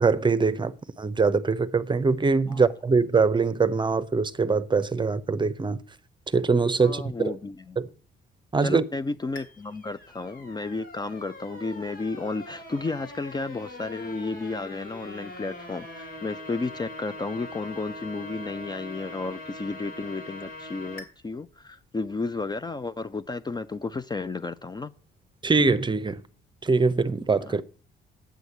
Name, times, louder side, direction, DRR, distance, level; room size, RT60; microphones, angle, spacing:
voice 1, 0.0-5.8 6.3-7.3 7.8-7.9 8.5-8.8 25.4-26.2 26.6-27.6, right 4 dB, 25° right, 0.7 m, -23 dB
voice 2, 6.8-7.8 8.6-24.9 27.4-27.6, left 3 dB, 20° left, 0.4 m, -33 dB
sound 1, 9.3-21.1, left 2 dB, 85° left, 2.6 m, -42 dB
9.1 x 6.3 x 8.3 m
cardioid pair, 90°, 20 cm